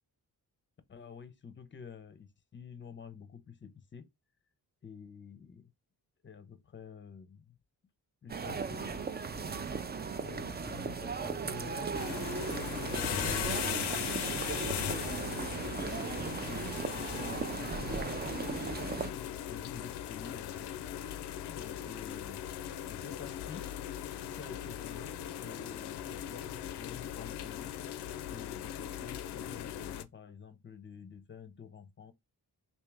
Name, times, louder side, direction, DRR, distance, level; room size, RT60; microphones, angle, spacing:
voice 1, 0.9-4.1 4.8-5.7 6.2-7.6 8.2-9.5 10.2-12.4 12.9-15.2 15.8-20.7 21.5-22.4 22.9-23.7 24.2-27.7 28.3-32.1, left 6 dB, 30° left, 0.6 m, -49 dB
sound 1, 8.3-19.1, right 5 dB, 25° right, 0.4 m, -37 dB
sound 2, 11.9-30.0, left 11 dB, 80° left, 0.5 m, -39 dB
3.3 x 2.8 x 3.3 m
cardioid pair, 95°, 39 cm